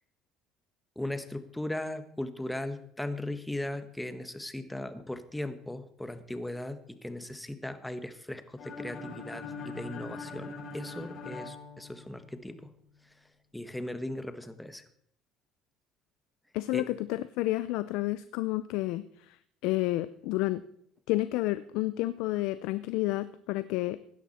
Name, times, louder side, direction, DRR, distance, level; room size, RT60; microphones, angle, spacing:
voice 1, 0.9-12.7 13.5-14.8 16.7-16.9, left 1 dB, 5° left, 10 dB, 1.4 m, -38 dB
sound 1, 8.6-12.5, left 3 dB, 55° left, 6.8 m, -42 dB
voice 2, 16.5-19.4 19.6-20.6 21.1-24.0, left 17 dB, 80° left, 14 dB, 0.5 m, -30 dB
16.5 x 11.0 x 4.3 m, 0.68 s
supercardioid pair, 90°, 0 cm